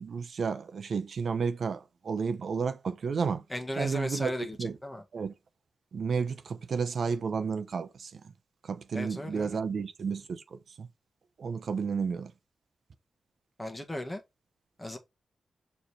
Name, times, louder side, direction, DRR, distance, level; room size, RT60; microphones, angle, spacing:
voice 1, 0.0-3.4 3.8-4.3 4.6-4.8 5.1-5.3 5.9-8.2 8.6-10.9 11.4-12.3, right 5 dB, 65° right, 0.8 m, -32 dB
voice 2, 3.5-5.0 8.9-9.6 13.6-14.2 14.8-15.0, left 1 dB, 10° left, 1.6 m, -36 dB
6.6 x 3.4 x 4.4 m
cardioid pair, 90°, 0 cm